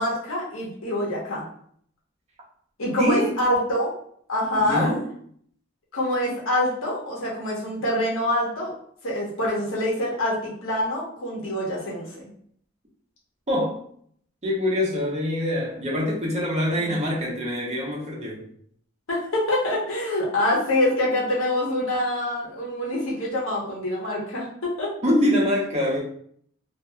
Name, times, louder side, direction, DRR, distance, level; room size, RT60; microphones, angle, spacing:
voice 1, 0.0-1.5 2.8-3.9 4.3-4.9 5.9-8.7 9.0-12.1 16.7-17.1 19.1-24.9 25.2-25.3, left 1 dB, 85° left, -4 dB, 1.0 m, -25 dB
voice 2, 3.0-3.4 4.6-5.1 13.5-13.8 14.4-18.4 25.0-26.0, equal, 35° right, -4 dB, 0.8 m, -24 dB
2.9 x 2.6 x 2.3 m, 0.62 s
head